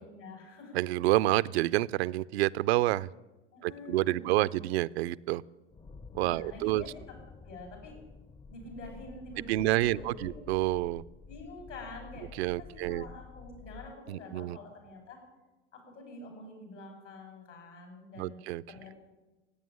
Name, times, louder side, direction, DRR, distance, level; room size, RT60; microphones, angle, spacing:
voice 1, 0.0-0.7 3.5-4.6 6.2-7.2 7.4-8.0 8.5-10.5 11.3-15.2 15.7-18.4 18.7-18.9, left 2 dB, 85° left, 3 dB, 6.3 m, -47 dB
voice 2, 0.7-3.1 3.6-5.4 6.1-6.8 9.5-11.0 12.4-13.1 14.1-14.6 18.2-18.6, right 17 dB, 60° right, 18 dB, 0.5 m, -28 dB
sound 1, 5.7-14.0, left 4 dB, 15° left, 0.5 m, -50 dB
15.5 x 9.1 x 9.9 m, 1.1 s
hypercardioid pair, 85°, 35 cm